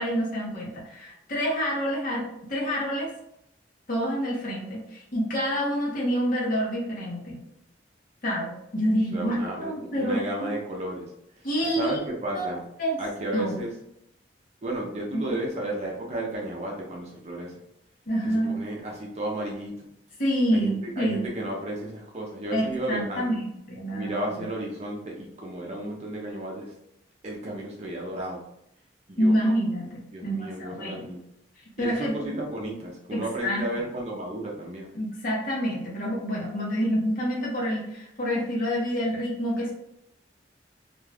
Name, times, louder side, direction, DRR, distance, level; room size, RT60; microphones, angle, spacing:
voice 1, 0.0-3.1 3.9-7.4 8.2-10.5 11.4-12.0 12.3-12.5 12.8-13.0 13.3-13.6 15.1-15.3 18.1-18.5 20.2-21.2 22.5-24.5 29.2-31.1 31.8-32.4 33.1-33.6 34.9-39.7, equal, 50° left, -3 dB, 0.9 m, -27 dB
voice 2, 9.1-11.1 11.7-12.7 13.0-13.7 14.6-17.5 18.5-19.7 20.5-23.4 23.9-26.7 27.2-28.4 29.1-29.4 30.1-31.2 31.8-34.9, right 1 dB, 35° right, -1 dB, 0.6 m, -33 dB
2.5 x 2.3 x 3.3 m, 0.79 s
head